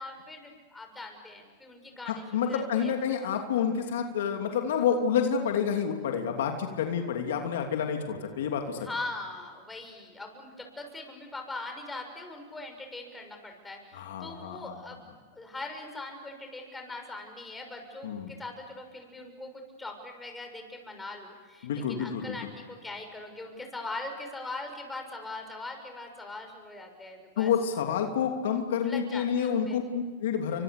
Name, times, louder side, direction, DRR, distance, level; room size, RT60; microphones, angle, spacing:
voice 1, 0.0-2.9 8.8-27.5 28.8-29.8, left 2 dB, 10° left, 4 dB, 6.8 m, -41 dB
voice 2, 2.0-8.8 13.9-14.8 18.0-18.3 21.6-22.4 27.4-30.6, left 7 dB, 75° left, 4 dB, 2.9 m, -29 dB
30.0 x 25.5 x 6.8 m, 1.5 s
hypercardioid pair, 110°, 0 cm